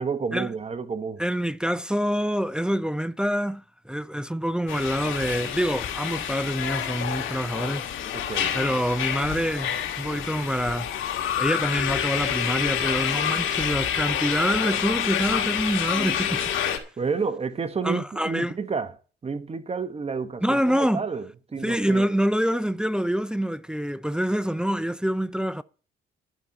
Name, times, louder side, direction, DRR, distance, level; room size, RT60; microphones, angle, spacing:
voice 1, 0.0-1.2 8.1-8.6 17.0-22.1, right 5 dB, 30° right, 1.3 m, -30 dB
voice 2, 1.2-7.9 8.5-10.9 11.4-16.4 17.8-18.5 20.4-21.0 21.6-25.6, equal, 5° right, 0.5 m, -26 dB
sound 1, 4.7-16.8, left 9 dB, 80° left, 2.1 m, -28 dB
11.0 x 5.6 x 8.7 m
cardioid pair, 90°, 20 cm